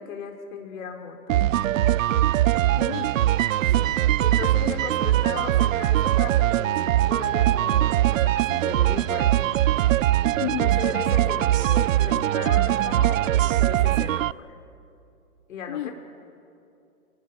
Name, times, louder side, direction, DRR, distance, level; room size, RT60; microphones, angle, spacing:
voice 1, 0.0-1.4 3.7-9.5 10.6-14.6 15.5-15.9, left 6 dB, 60° left, 3 dB, 4.4 m, -37 dB
sound 1, 1.3-14.3, right 13 dB, 60° right, 0.5 m, -21 dB
voice 2, 2.8-3.2 10.4-10.7 15.7-15.9, left 12 dB, 30° left, 10 dB, 0.6 m, -31 dB
27.5 x 18.5 x 7.0 m, 2.5 s
hypercardioid pair, 140°, 45 cm